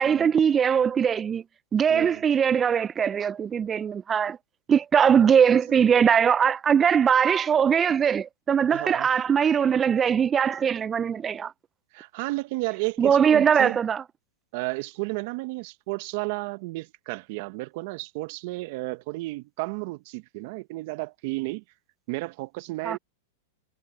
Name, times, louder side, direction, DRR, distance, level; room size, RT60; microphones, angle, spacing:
voice 1, 0.0-1.4 1.7-4.4 4.7-11.5 13.0-14.0 22.8-23.0, right 7 dB, 20° right, 0.3 m, -21 dB
voice 2, 1.9-2.2 8.7-9.1 11.9-13.8 14.5-21.6 22.1-23.0, right 24 dB, 55° right, 0.9 m, -32 dB
hypercardioid pair, 125°, 0 cm